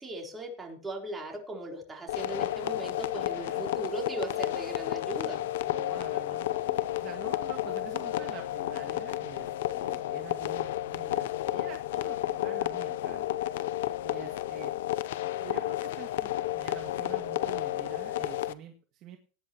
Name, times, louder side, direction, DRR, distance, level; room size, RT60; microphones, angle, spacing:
voice 1, 0.0-5.4, right 1 dB, 10° right, 0 dB, 3.9 m, -38 dB
sound 1, 2.1-18.5, left 14 dB, 75° left, 0.7 m, -32 dB
voice 2, 3.3-3.7 5.7-13.3 14.0-14.7 15.4-19.2, right 10 dB, 40° right, 3 dB, 1.9 m, -47 dB
18.5 x 10.5 x 3.0 m, 0.37 s
supercardioid pair, 140°, 0 cm